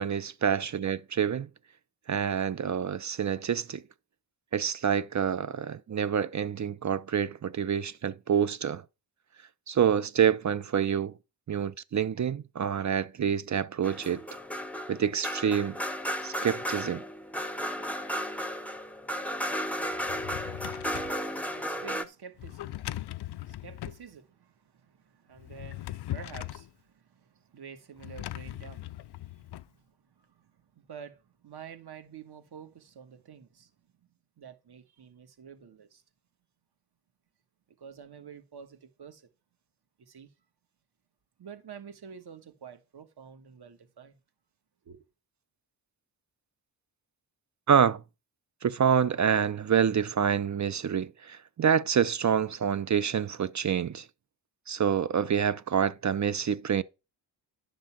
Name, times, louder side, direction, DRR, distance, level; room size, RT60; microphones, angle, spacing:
voice 1, 0.0-1.5 2.1-3.8 4.5-8.8 9.7-11.1 11.5-14.2 14.9-15.8 16.2-17.0 47.7-48.0 48.6-54.1 54.7-56.8, right 8 dB, 40° right, 0.5 m, -27 dB
sound 1, 13.8-22.0, equal, 5° left, 0.7 m, -34 dB
Drawer open or close, 19.9-21.2 22.4-24.0 25.4-26.7 28.0-29.7, left 14 dB, 65° left, 0.5 m, -39 dB
voice 2, 20.9-34.1 34.4-36.0 37.7-39.3 40.0-40.3 41.4-44.2 44.8-45.1, right 7 dB, 60° right, 1.4 m, -49 dB
11.0 x 3.8 x 7.3 m
wide cardioid pair, 125°, 44 cm